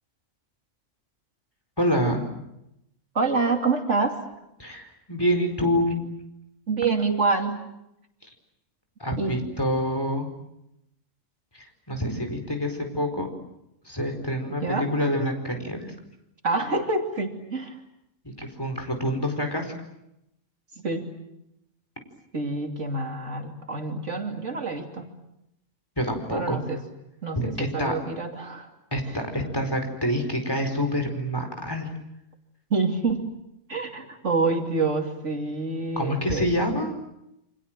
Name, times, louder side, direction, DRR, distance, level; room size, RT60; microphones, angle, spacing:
voice 1, 1.8-2.2 4.6-6.0 9.0-10.3 11.9-13.3 13.8-15.9 18.4-19.7 26.0-26.6 27.3-27.9 28.9-31.9 36.0-37.0, equal, 15° left, 4 dB, 4.9 m, -26 dB
voice 2, 3.1-4.2 6.7-7.6 9.2-9.4 14.5-14.9 16.4-17.8 20.8-21.0 22.3-25.1 26.3-26.8 27.2-28.7 29.1-29.2 32.7-33.2 33.7-36.5, right 3 dB, 70° right, 4 dB, 3.2 m, -27 dB
29.0 x 25.5 x 7.7 m, 0.84 s
omnidirectional pair, 1.3 m